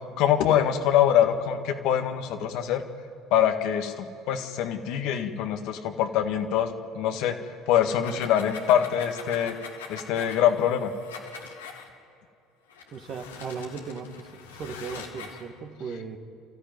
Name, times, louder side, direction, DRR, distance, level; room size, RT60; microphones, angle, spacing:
voice 1, 0.2-2.8 3.3-7.3 7.7-9.6 9.9-10.9, left 10 dB, 65° left, 6 dB, 1.8 m, -24 dB
sound 1, 7.8-11.9 12.7-15.5, left 6 dB, 85° left, 2.1 m, -43 dB
voice 2, 12.9-14.3 14.5-16.2, right 5 dB, 50° right, 5 dB, 2.0 m, -37 dB
29.0 x 14.0 x 9.4 m, 2.4 s
hypercardioid pair, 70°, 0 cm